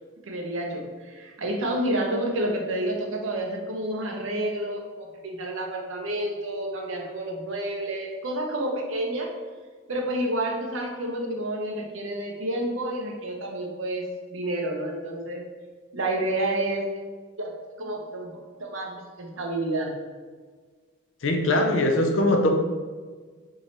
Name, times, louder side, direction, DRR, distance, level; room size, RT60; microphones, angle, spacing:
voice 1, 0.3-9.3 9.9-15.4 15.9-16.8 17.4-17.5 17.8-19.9, right 1 dB, 75° right, 1 dB, 0.8 m, -29 dB
voice 2, 21.2-22.5, left 1 dB, 70° left, 3 dB, 0.6 m, -21 dB
3.7 x 3.1 x 3.9 m, 1.5 s
head